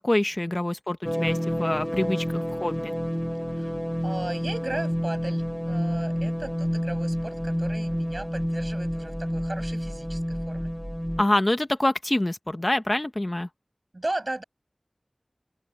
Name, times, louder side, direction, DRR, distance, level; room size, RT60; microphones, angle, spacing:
voice 1, 0.0-2.9 11.2-13.5, left 1 dB, 35° left, 1.1 m, -26 dB
sound 1, 1.0-11.2, equal, 5° left, 1.4 m, -29 dB
voice 2, 4.0-10.7 13.9-14.4, right 2 dB, 50° right, 6.1 m, -36 dB
open air
wide cardioid pair, 50°, 0 cm